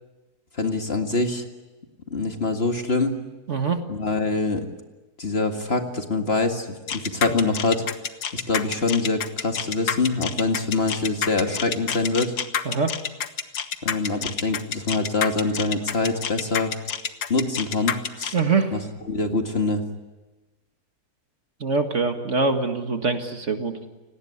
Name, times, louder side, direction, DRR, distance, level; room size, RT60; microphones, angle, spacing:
voice 1, 0.5-1.4 2.1-3.1 3.9-4.7 5.2-7.8 8.3-12.3 13.8-16.7 17.3-18.3 18.7-18.8 19.1-19.8, left 3 dB, 40° left, 5 dB, 2.2 m, -24 dB
voice 2, 3.5-3.8 12.7-13.0 18.3-18.8 21.6-23.9, right 4 dB, 50° right, 6 dB, 2.0 m, -24 dB
sound 1, 6.9-18.4, left 7 dB, 85° left, 1.8 m, -28 dB
30.0 x 18.5 x 9.8 m, 1.2 s
omnidirectional pair, 1.7 m